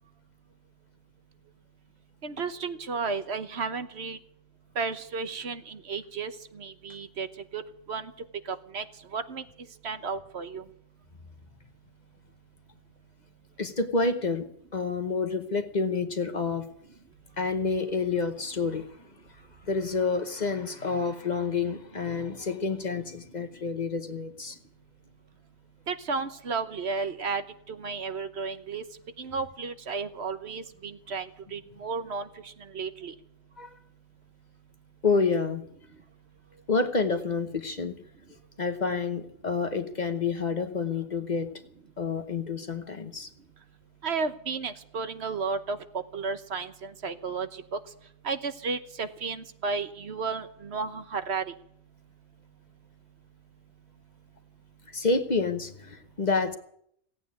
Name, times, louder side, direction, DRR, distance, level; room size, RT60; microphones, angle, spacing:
voice 1, 2.2-4.2 4.8-7.3 7.5-7.6 7.9-8.1 8.5-8.8 9.1-9.4 9.8-10.6 25.9-27.4 27.7-28.8 29.2-33.1 44.0-45.8 46.1-47.5 47.7-47.8 48.2-51.5, right 4 dB, 65° right, 10 dB, 1.3 m, -33 dB
voice 2, 13.6-14.5 14.7-16.7 17.4-18.9 19.6-24.6 33.6-33.7 35.0-35.6 36.7-38.0 38.6-41.5 42.0-43.3 54.9-56.6, left 4 dB, 40° left, 9 dB, 1.0 m, -28 dB
17.0 x 8.8 x 9.5 m, 0.71 s
omnidirectional pair, 1.2 m